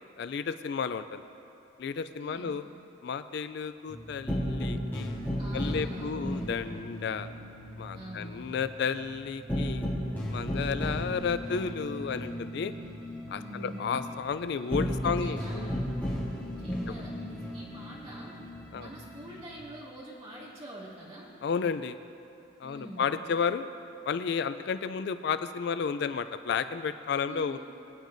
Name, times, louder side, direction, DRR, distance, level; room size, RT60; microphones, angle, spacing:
voice 1, 0.2-1.2 1.8-2.6 3.0-5.2 5.5-7.3 7.8-9.8 10.3-12.7 13.3-15.8 18.7-18.9 21.4-22.0 22.6-23.7 24.1-27.6, left 6 dB, 60° left, 12 dB, 0.3 m, -32 dB
voice 2, 2.2-2.5 5.4-6.5 7.9-8.4 13.3-13.8 15.0-15.8 16.6-18.4 18.7-21.3 22.6-23.1 27.2-27.6, equal, 30° right, -6 dB, 2.5 m, -45 dB
sound 1, 3.9-19.6, equal, 10° left, 2.5 m, -35 dB
23.0 x 9.1 x 2.6 m, 2.8 s
head